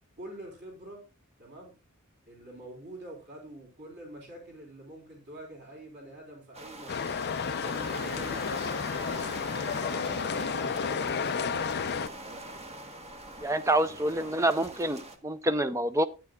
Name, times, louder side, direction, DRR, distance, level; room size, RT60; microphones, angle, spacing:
voice 1, 0.2-1.0 1.4-1.7 2.3-11.9 12.2-12.4 13.8-14.5, right 1 dB, 50° right, -1 dB, 4.1 m, -46 dB
sound 1, 6.5-15.2, right 1 dB, 30° right, 1.2 m, -43 dB
sound 2, 6.9-12.1, left 6 dB, 50° left, 0.5 m, -31 dB
voice 2, 13.4-16.0, right 1 dB, 15° right, 11 dB, 0.6 m, -27 dB
13.5 x 9.4 x 2.3 m, 0.29 s
head